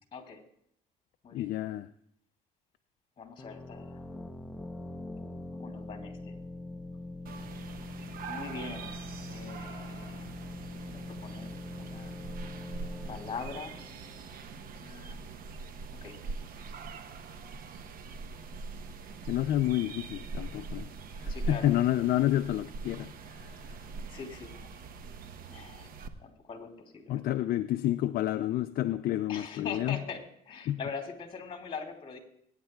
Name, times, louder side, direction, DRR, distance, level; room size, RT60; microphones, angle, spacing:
voice 1, 1.3-1.9 19.3-20.9 21.2-23.1 27.1-30.0 30.7-30.8, left 13 dB, 60° left, 9 dB, 0.4 m, -29 dB
voice 2, 3.2-4.0 5.6-6.3 8.3-10.3 10.7-12.1 13.1-13.8 14.7-15.2 16.0-16.1 21.3-21.7 24.1-24.7 25.5-25.9 26.2-27.3 29.3-32.2, left 5 dB, 35° left, 5 dB, 2.9 m, -42 dB
sound 1, 3.4-14.9, left 2 dB, 5° left, 0.7 m, -43 dB
sound 2, 7.3-26.1, right 4 dB, 60° right, 0.9 m, -42 dB
22.0 x 9.7 x 2.3 m, 0.71 s
cardioid pair, 110°, 17 cm